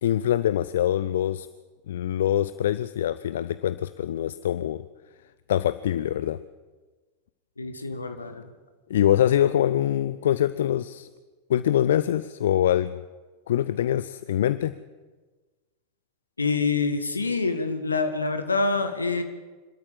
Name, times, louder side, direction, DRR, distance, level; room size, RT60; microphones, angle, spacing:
voice 1, 0.0-1.5 1.9-4.8 5.5-6.4 8.9-11.1 11.5-13.0 13.5-14.7, left 11 dB, 60° left, 15 dB, 0.5 m, -24 dB
voice 2, 7.6-8.5 16.4-19.2, left 4 dB, 80° left, 7 dB, 1.9 m, -26 dB
26.0 x 13.5 x 7.5 m, 1.3 s
figure-of-eight pair, 90°, 0 cm